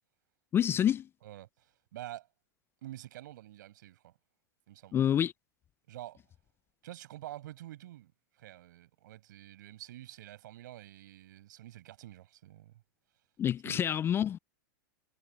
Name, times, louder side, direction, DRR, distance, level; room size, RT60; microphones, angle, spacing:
voice 1, 0.5-1.0 4.9-5.3 13.4-14.4, left 10 dB, 20° left, 0.4 m, -27 dB
voice 2, 1.2-2.3 2.8-4.1 4.7-5.0 5.9-6.2 6.8-8.1 8.4-12.7 13.6-13.8, right 14 dB, 65° right, 5.6 m, -48 dB
hypercardioid pair, 110°, 11 cm